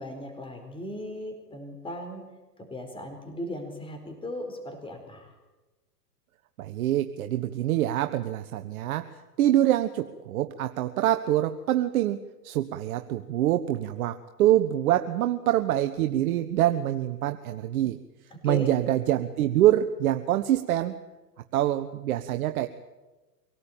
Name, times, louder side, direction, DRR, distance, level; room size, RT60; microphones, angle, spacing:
voice 1, 0.0-2.2 2.6-5.3 18.3-18.7, left 1 dB, 10° left, 4 dB, 4.5 m, -37 dB
voice 2, 6.6-18.0 18.4-21.0 21.5-22.7, right 13 dB, 60° right, 7 dB, 1.3 m, -25 dB
25.0 x 18.0 x 8.9 m, 1.1 s
hypercardioid pair, 125°, 50 cm